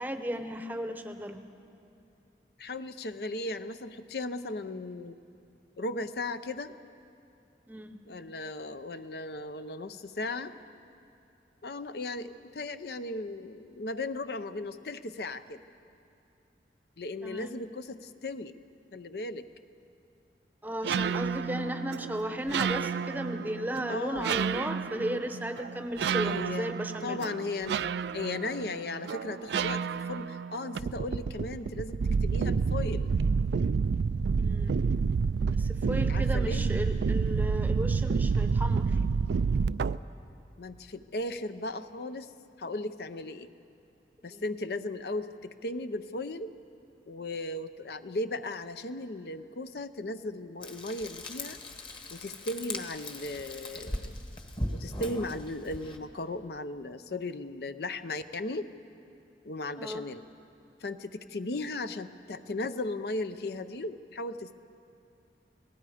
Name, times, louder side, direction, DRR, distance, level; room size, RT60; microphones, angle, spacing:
voice 1, 0.0-1.4 7.7-8.0 17.2-17.5 20.6-27.2 34.3-34.7 35.6-39.0 44.3-44.4 52.5-52.7 59.8-60.0, equal, 10° right, 8 dB, 0.8 m, -35 dB
voice 2, 2.6-5.2 5.8-6.7 8.1-10.5 11.6-15.6 17.0-18.5 18.9-19.5 23.9-24.3 26.2-26.7 27.0-27.8 28.1-33.1 36.1-36.7 40.6-42.3 42.6-43.5 44.2-46.5 47.1-51.6 52.1-54.1 54.7-58.7 59.5-60.2 60.8-64.5, left 2 dB, 65° left, 11 dB, 0.6 m, -36 dB
sound 1, 20.8-40.0, right 5 dB, 80° right, 0.4 m, -29 dB
Frying (food), 50.6-56.0, left 1 dB, 30° left, 1.3 m, -39 dB
29.0 x 18.5 x 5.0 m, 2.7 s
head